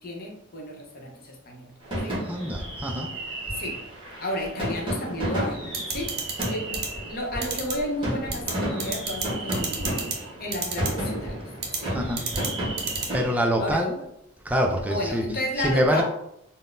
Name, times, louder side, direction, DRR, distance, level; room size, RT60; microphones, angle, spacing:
voice 1, 0.0-1.7 2.0-2.2 3.6-3.8 4.2-5.6 5.9-6.2 6.4-6.8 7.1-11.4 11.8-11.9 13.6-13.8 14.9-16.0, left 1 dB, 45° left, 0 dB, 0.7 m, -32 dB
sound 1, 1.8-13.3, right 1 dB, 25° right, 1.1 m, -32 dB
voice 2, 2.3-3.1 11.9-12.3 13.1-13.9 14.4-15.2 15.6-16.0, equal, 5° right, 2 dB, 0.3 m, -25 dB
sound 2, 5.7-6.5 6.7-6.9 7.4-7.7 8.3-8.5 8.8-9.3 9.5-10.2 10.5-10.9 11.6-11.8 12.2-12.5 12.8-13.1, right 6 dB, 50° right, 0.6 m, -28 dB
3.8 x 2.1 x 2.5 m, 0.77 s
head